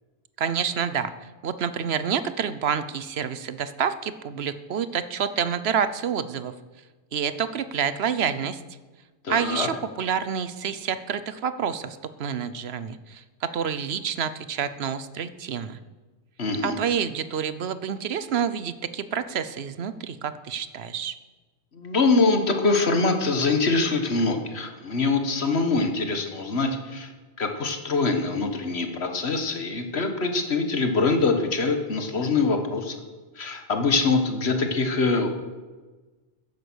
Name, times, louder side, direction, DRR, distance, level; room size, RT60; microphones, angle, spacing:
voice 1, 0.4-1.1 1.4-6.5 7.1-8.6 9.3-15.8 16.6-21.1, right 7 dB, 75° right, 13 dB, 1.0 m, -28 dB
voice 2, 9.2-9.7 16.4-16.8 21.7-27.1 27.4-33.0 33.4-35.3, left 3 dB, 75° left, 5 dB, 1.8 m, -24 dB
14.5 x 10.5 x 6.3 m, 1.3 s
omnidirectional pair, 1.1 m